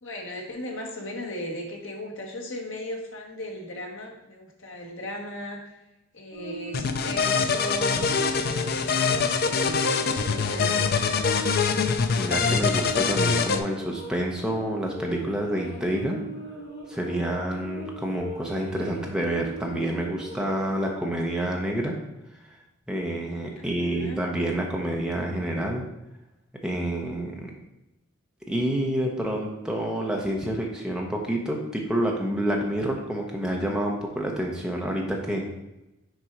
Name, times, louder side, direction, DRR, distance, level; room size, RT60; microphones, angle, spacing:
voice 1, 0.0-5.8 6.1-9.7 10.2-11.2 23.6-24.2, left 1 dB, 70° left, 0 dB, 1.3 m, -37 dB
sound 1, 6.3-20.8, equal, 20° left, 2.6 m, -40 dB
sound 2, 6.7-13.6, left 5 dB, 45° left, 0.4 m, -24 dB
voice 2, 12.1-16.2 16.9-22.0 22.9-25.8 26.6-27.5 28.5-35.5, right 1 dB, 5° right, -1 dB, 0.9 m, -28 dB
6.4 x 4.5 x 4.6 m, 0.93 s
head